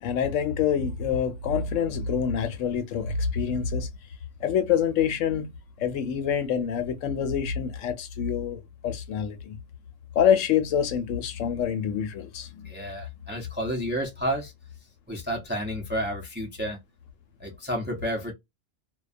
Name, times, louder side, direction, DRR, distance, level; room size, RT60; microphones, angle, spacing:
voice 1, 0.0-3.9 4.4-5.5 5.8-9.6 10.1-12.7, left 8 dB, 75° left, 0.9 m, -26 dB
voice 2, 12.6-14.5 15.1-16.8 17.4-18.3, equal, 15° right, 0.3 m, -31 dB
2.3 x 2.2 x 2.4 m
omnidirectional pair, 1.3 m